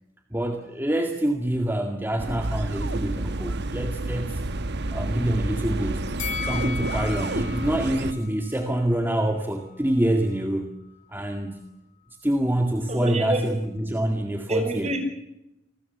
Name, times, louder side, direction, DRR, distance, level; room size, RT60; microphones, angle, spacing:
voice 1, 0.3-4.4 4.9-6.1 6.4-10.7 11.1-11.6 12.2-15.0, right 1 dB, 10° right, 3 dB, 2.1 m, -26 dB
sound 1, 2.2-8.1, right 2 dB, 55° right, 1.2 m, -29 dB
Bell, 6.2-9.4 9.7-9.9, left 8 dB, 40° left, 2.3 m, -37 dB
voice 2, 12.9-13.4 14.5-15.0, right 2 dB, 35° right, 5 dB, 7.2 m, -27 dB
28.5 x 20.5 x 6.9 m, 0.87 s
head